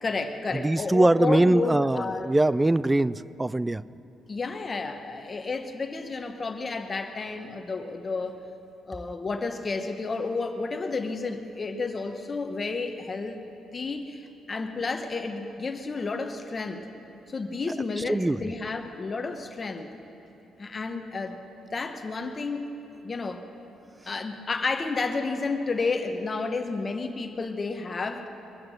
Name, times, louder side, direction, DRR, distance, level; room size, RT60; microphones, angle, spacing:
voice 1, 0.0-2.4 4.3-8.4 8.9-13.4 13.7-16.9 17.3-19.9 20.6-21.4 21.7-22.7 23.0-23.4 24.1-28.3, left 3 dB, 35° left, 7 dB, 1.0 m, -31 dB
voice 2, 0.6-3.8 18.1-18.4, right 2 dB, 15° right, 19 dB, 0.3 m, -22 dB
22.5 x 8.7 x 6.4 m, 2.9 s
cardioid pair, 90°, 0 cm